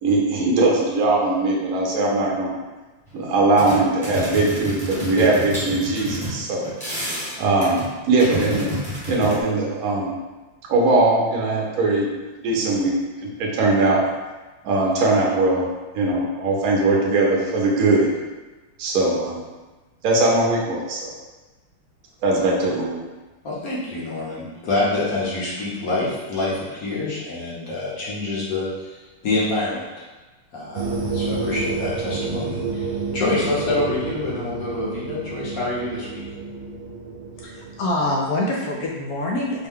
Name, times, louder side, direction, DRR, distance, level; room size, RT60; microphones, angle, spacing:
voice 1, 0.0-2.6 3.1-6.6 7.4-7.8 8.1-8.8 9.1-10.2 10.7-12.1 12.4-12.9 13.2-14.0 14.6-15.7 15.9-18.1 18.8-19.4 20.0-21.1 22.2-23.0, right 2 dB, 60° right, -2 dB, 1.0 m, -20 dB
sound 1, 3.1-3.2 3.4-9.4, equal, 5° left, 0.8 m, -30 dB
voice 2, 23.4-29.9 30.5-36.2, left 2 dB, 55° left, -7 dB, 1.2 m, -26 dB
sound 2, 30.7-37.9, right 4 dB, 80° right, 1.3 m, -29 dB
voice 3, 37.4-39.7, left 1 dB, 85° left, -2 dB, 0.8 m, -25 dB
4.4 x 2.2 x 3.5 m, 1.2 s
omnidirectional pair, 2.2 m